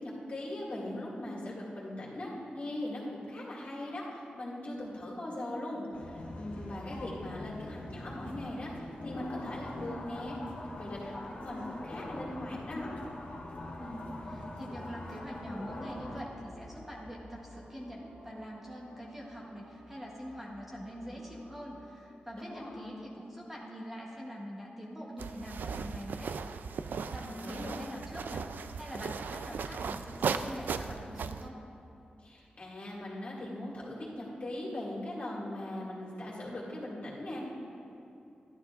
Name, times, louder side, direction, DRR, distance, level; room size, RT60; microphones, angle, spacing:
voice 1, 0.0-10.4 10.8-13.0 22.4-23.1 27.3-27.8 32.2-37.5, left 1 dB, 50° left, -6 dB, 2.1 m, -40 dB
sound 1, 5.9-16.2, left 2 dB, 65° left, 1.3 m, -42 dB
voice 2, 13.8-26.3 26.8-31.6, equal, 10° right, -3 dB, 1.0 m, -44 dB
sound 2, 15.9-23.0, equal, 60° right, 1.7 m, -55 dB
sound 3, 25.2-31.5, right 5 dB, 90° right, 0.3 m, -37 dB
12.5 x 11.5 x 2.5 m, 2.8 s
wide cardioid pair, 145°, 3 cm